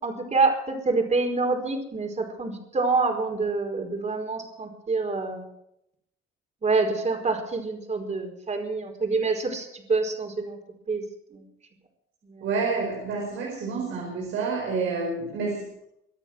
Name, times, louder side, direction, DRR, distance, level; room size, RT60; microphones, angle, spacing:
voice 1, 0.0-5.4 6.6-10.6 10.9-11.0 11.3-11.4 12.3-12.4, right 3 dB, 35° right, 4 dB, 4.8 m, -26 dB
voice 2, 12.4-15.7, right 4 dB, 85° right, 0 dB, 5.0 m, -28 dB
24.5 x 9.1 x 6.4 m, 0.78 s
cardioid pair, 90°, 20 cm